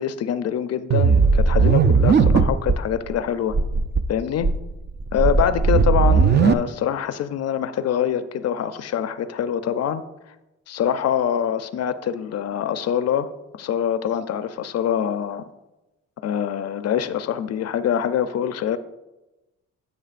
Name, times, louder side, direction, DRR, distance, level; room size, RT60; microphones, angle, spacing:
voice 1, 0.0-3.6 4.1-4.5 5.1-10.0 10.7-15.5 16.2-18.8, left 9 dB, 55° left, 12 dB, 0.5 m, -24 dB
sound 1, 0.9-2.8 3.1-3.2 3.5-4.0 4.4-6.5, right 5 dB, 35° right, 0.5 m, -17 dB
12.5 x 6.0 x 2.5 m, 1.0 s
cardioid pair, 90°, 30 cm